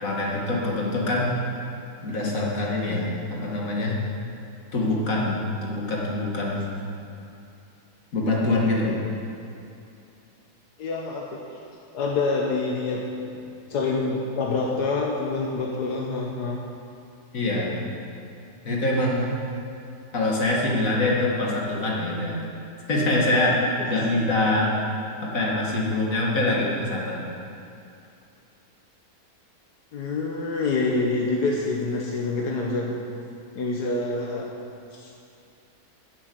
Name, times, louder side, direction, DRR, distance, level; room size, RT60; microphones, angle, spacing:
voice 1, 0.0-1.4 2.0-4.0 4.7-6.8 8.1-9.0 17.3-17.8 18.6-19.3 20.1-22.4 22.9-23.6 23.9-24.7 25.2-27.2, left 2 dB, 60° left, -3 dB, 2.4 m, -24 dB
voice 2, 10.8-11.4 11.9-13.0 13.7-16.6 23.8-23.9 29.9-33.0 33.5-34.5 34.9-35.1, left 3 dB, 85° left, -2 dB, 1.6 m, -26 dB
10.5 x 7.9 x 7.9 m, 2.6 s
omnidirectional pair, 1.7 m